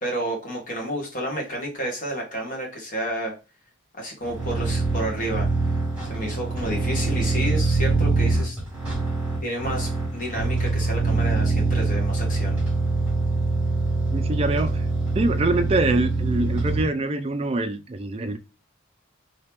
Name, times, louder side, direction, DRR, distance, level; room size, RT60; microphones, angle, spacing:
voice 1, 0.0-3.3 3.9-5.5 6.0-8.6 9.4-12.6, equal, 40° left, 1.2 m, -30 dB
sound 1, 4.2-16.8, right 3 dB, 5° right, 1.3 m, -24 dB
voice 2, 14.1-14.9 15.1-18.4, right 2 dB, 30° right, 0.3 m, -24 dB
2.9 x 2.8 x 3.4 m
head